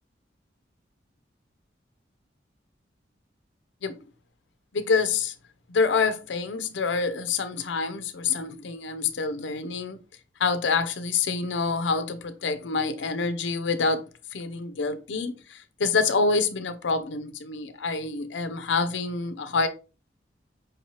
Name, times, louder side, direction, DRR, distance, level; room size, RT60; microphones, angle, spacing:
voice 1, 4.7-5.3 5.7-10.0 10.4-14.0 14.3-19.7, left 4 dB, 90° left, 0.5 m, -27 dB
5.1 x 2.8 x 3.0 m
head